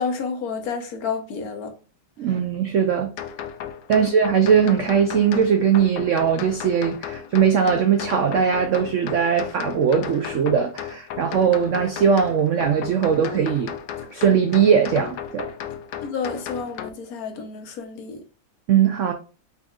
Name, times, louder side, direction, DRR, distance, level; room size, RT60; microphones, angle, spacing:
voice 1, 0.0-1.7 2.2-2.3 3.9-4.1 16.0-18.2, left 5 dB, 60° left, 1.2 m, -30 dB
voice 2, 2.2-3.1 3.9-13.7 14.1-15.5 18.7-19.1, right 7 dB, 85° right, 0.6 m, -20 dB
sound 1, 3.2-16.9, left 9 dB, 80° left, 1.3 m, -35 dB
4.6 x 4.2 x 2.3 m
omnidirectional pair, 1.9 m